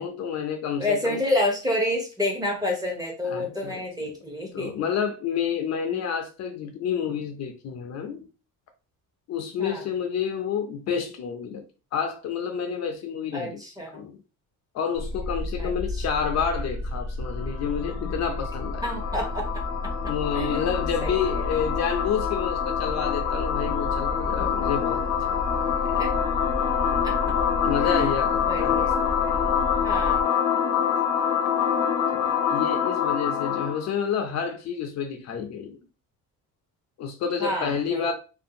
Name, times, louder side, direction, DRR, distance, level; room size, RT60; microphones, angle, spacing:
voice 1, 0.0-1.2 3.2-4.1 4.5-8.3 9.3-11.6 11.9-13.6 13.9-14.2 14.7-18.9 20.0-25.4 27.2-28.9 31.3-31.4 32.1-35.8 37.0-38.1, left 7 dB, 50° left, 5 dB, 0.4 m, -29 dB
voice 2, 0.8-4.7 5.9-6.0 9.6-9.8 13.3-14.1 15.6-15.7 18.8-19.6 20.3-20.6 21.0-21.4 26.0-26.1 27.0-27.2 27.8-28.1 28.5-29.6 29.8-30.2 37.4-38.1, left 1 dB, 10° right, 1 dB, 0.6 m, -29 dB
sound 1, 15.0-30.2, left 1 dB, 65° right, 0.5 m, -32 dB
sound 2, 17.2-33.9, left 8 dB, 80° left, 0.8 m, -26 dB
2.6 x 2.2 x 2.6 m, 0.33 s
cardioid pair, 160°, 35 cm